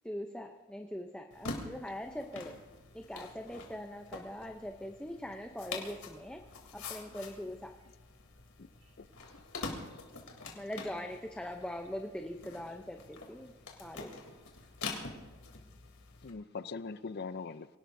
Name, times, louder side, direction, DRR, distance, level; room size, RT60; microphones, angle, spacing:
voice 1, 0.0-2.5 2.9-6.4 6.7-7.7 10.6-13.5 13.8-14.1, left 1 dB, 5° left, 3 dB, 0.7 m, -42 dB
sound 1, 1.3-16.3, left 3 dB, 90° left, 3.2 m, -46 dB
voice 2, 9.3-10.0 16.2-17.7, left 4 dB, 50° left, 13 dB, 0.6 m, -42 dB
voice 3, 13.8-14.2 14.6-15.7, right 2 dB, 70° right, 1 dB, 1.8 m, -66 dB
26.0 x 18.0 x 2.7 m, 1.3 s
head